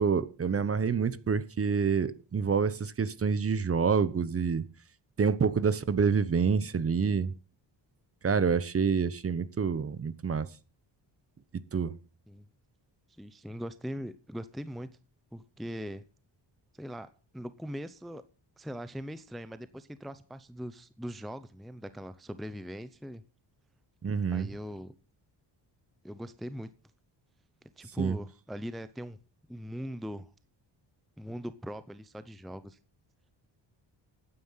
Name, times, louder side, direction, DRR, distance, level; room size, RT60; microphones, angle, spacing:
voice 1, 0.0-4.6 5.2-7.3 8.2-10.5 11.7-11.9 24.0-24.5 28.0-28.2, right 6 dB, 30° right, 0.9 m, -27 dB
voice 2, 13.2-14.9 15.3-16.0 16.7-17.1 17.3-18.2 18.6-23.2 24.3-25.0 26.0-26.7 27.8-29.2 29.5-30.3 31.2-32.8, equal, ahead, 0.6 m, -40 dB
14.0 x 9.7 x 5.6 m
wide cardioid pair, 140°, 44 cm